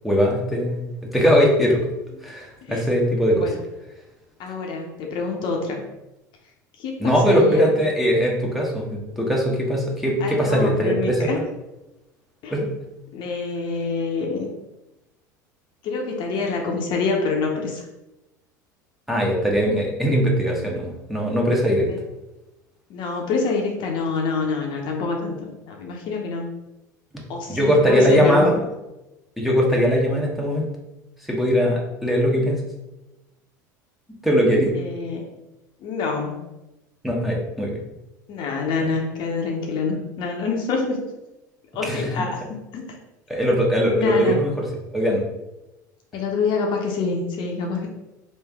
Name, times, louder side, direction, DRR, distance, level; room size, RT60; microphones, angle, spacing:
voice 1, 0.0-1.8 2.2-3.5 7.0-11.2 12.5-12.7 19.1-21.9 27.1-27.2 27.5-28.6 29.4-30.7 31.3-32.6 34.2-34.7 37.0-37.8 38.8-38.9 41.8-42.2 43.3-44.5 44.9-45.2, equal, ahead, -2 dB, 0.9 m, -20 dB
voice 2, 4.4-5.8 6.8-7.8 10.2-11.4 12.4-12.5 13.1-14.5 15.8-17.9 21.9-22.0 22.9-26.5 27.3-28.5 34.7-35.2 35.8-36.4 38.3-41.0 41.7-42.4 42.7-43.0 44.0-44.4 46.1-47.9, left 4 dB, 50° left, 1 dB, 0.7 m, -26 dB
3.2 x 2.6 x 3.5 m, 0.97 s
hypercardioid pair, 80°, 10 cm